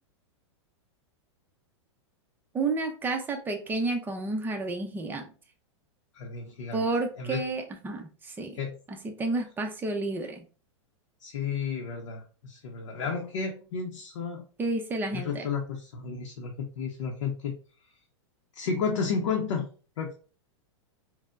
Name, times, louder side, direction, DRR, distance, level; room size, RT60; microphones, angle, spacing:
voice 1, 2.5-5.3 6.7-8.6 8.9-10.4 14.6-15.5, right 3 dB, 10° right, 3 dB, 0.5 m, -31 dB
voice 2, 6.1-6.8 7.2-7.4 8.6-8.8 11.2-14.4 15.1-17.6 18.5-20.1, left 5 dB, 70° left, 1 dB, 0.6 m, -32 dB
4.2 x 2.1 x 2.4 m, 0.37 s
hypercardioid pair, 125°, 16 cm